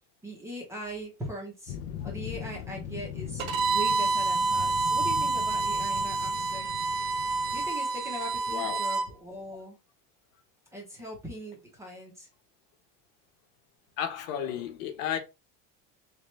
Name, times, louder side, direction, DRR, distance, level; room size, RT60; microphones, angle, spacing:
voice 1, 0.2-1.8 2.0-3.5 3.7-6.7 7.5-9.8 10.7-12.3, equal, 5° right, 0.7 m, -40 dB
sound 1, 1.7-7.7, left 10 dB, 40° left, 0.4 m, -40 dB
Bowed string instrument, 3.4-9.1, right 3 dB, 50° right, 1.0 m, -28 dB
voice 2, 8.5-8.8 14.0-15.2, left 9 dB, 75° left, 1.0 m, -32 dB
3.4 x 3.4 x 3.1 m
cardioid pair, 175°, 39 cm